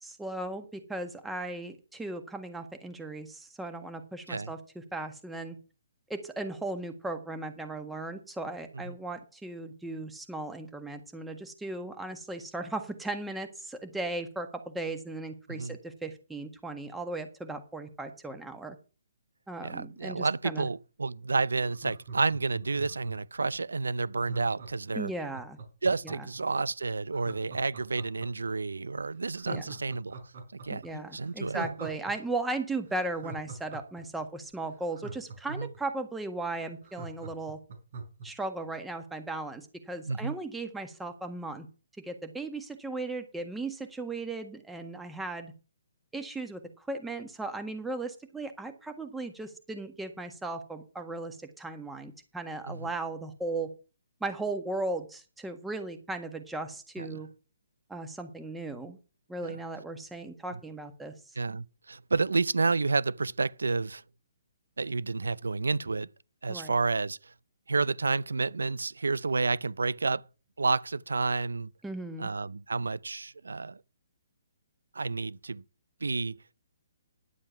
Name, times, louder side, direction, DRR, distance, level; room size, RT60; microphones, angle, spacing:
voice 1, 0.0-5.5 6.1-18.7 19.5-20.7 24.9-25.6 26.0-26.3 29.5-29.7 30.7-37.6 38.2-41.7 42.0-45.5 46.1-53.7 54.2-57.3 57.9-59.0 59.3-61.3 66.5-66.8 71.8-72.3, right 2 dB, 5° right, 1.6 m, -37 dB
voice 2, 19.6-25.1 25.8-30.2 30.6-31.6 35.5-35.7 40.1-40.3 52.7-52.8 57.0-57.2 59.4-59.6 61.4-64.0 64.8-66.1 66.4-67.2 67.7-70.2 70.6-71.7 72.2-73.8 75.0-75.6 76.0-76.3, right 4 dB, 85° right, 0.5 m, -30 dB
Laughter, 21.7-23.3 24.2-26.4 27.1-28.5 28.9-29.0 29.4-32.1 32.4-32.5 32.9-35.8 36.2-36.3 36.5-38.3 38.6-38.7, right 4 dB, 60° right, 4.9 m, -42 dB
11.0 x 7.6 x 5.8 m
hypercardioid pair, 145°, 0 cm